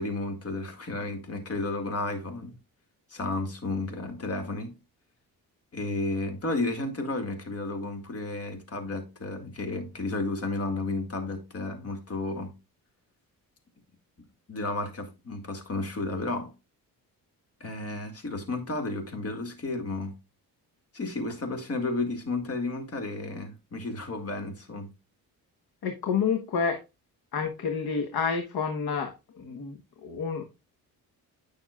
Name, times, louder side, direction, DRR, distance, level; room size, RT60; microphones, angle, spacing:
voice 1, 0.0-2.6 3.1-4.8 5.7-12.5 14.5-16.5 17.6-20.1 20.9-24.9, left 2 dB, 40° left, 2.1 m, -32 dB
voice 2, 25.8-26.8 27.3-30.4, left 6 dB, 80° left, 1.2 m, -29 dB
9.2 x 6.2 x 2.4 m
cardioid pair, 110°, 37 cm